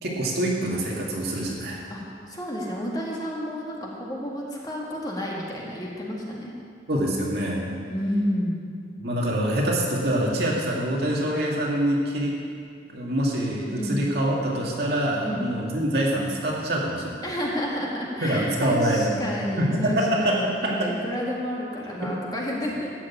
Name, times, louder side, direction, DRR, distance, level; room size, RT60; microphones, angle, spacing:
voice 1, 0.0-1.8 6.9-7.7 9.0-12.3 12.9-17.3 18.2-19.3 19.6-20.9 22.0-22.1, right 1 dB, 55° right, -3 dB, 2.3 m, -25 dB
voice 2, 2.3-6.5 7.9-8.6 13.8-14.0 15.2-15.5 17.2-22.9, equal, 20° left, -3 dB, 1.8 m, -30 dB
13.0 x 6.3 x 8.6 m, 2.3 s
head